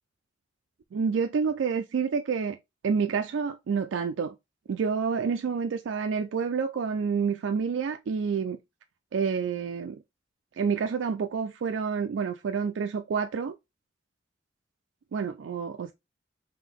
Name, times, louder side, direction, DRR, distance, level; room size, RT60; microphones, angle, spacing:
voice 1, 0.9-2.6 2.8-4.3 4.7-8.6 9.1-10.0 10.6-13.5 15.1-15.9, right 6 dB, 80° right, 0.4 m, -28 dB
3.6 x 2.8 x 3.5 m
head